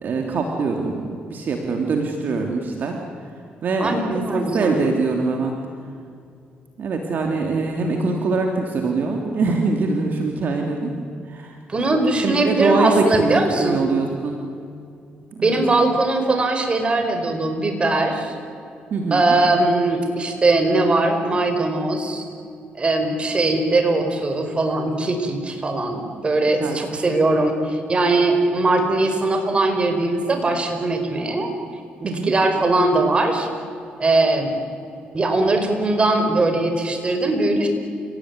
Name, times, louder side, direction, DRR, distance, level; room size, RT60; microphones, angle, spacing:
voice 1, 0.0-3.0 3.6-5.6 6.8-10.9 11.3-11.6 12.2-14.4 15.3-15.6 18.9-19.3 26.6-26.8 32.0-32.3, right 3 dB, 55° right, 2 dB, 3.1 m, -23 dB
voice 2, 3.8-4.8 11.7-13.8 15.4-18.4 19.1-22.2 22.7-31.5 32.0-33.5 34.0-34.5 35.1-37.7, right 2 dB, 30° right, 5 dB, 5.1 m, -20 dB
29.5 x 18.0 x 9.8 m, 2.4 s
cardioid pair, 90°, 4 cm